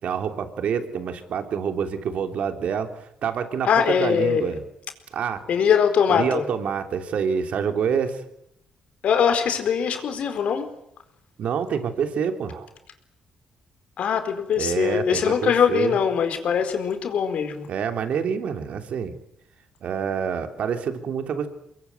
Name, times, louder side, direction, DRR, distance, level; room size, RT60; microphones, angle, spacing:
voice 1, 0.0-4.6 5.1-5.4 6.1-8.2 11.4-12.7 14.6-16.0 17.7-19.1 19.8-21.5, right 7 dB, 65° right, 7 dB, 3.2 m, -27 dB
voice 2, 3.6-4.5 5.5-6.4 9.0-10.7 14.0-17.7, left 7 dB, 65° left, 7 dB, 4.5 m, -22 dB
24.0 x 21.5 x 9.4 m, 0.76 s
cardioid pair, 85°, 2 cm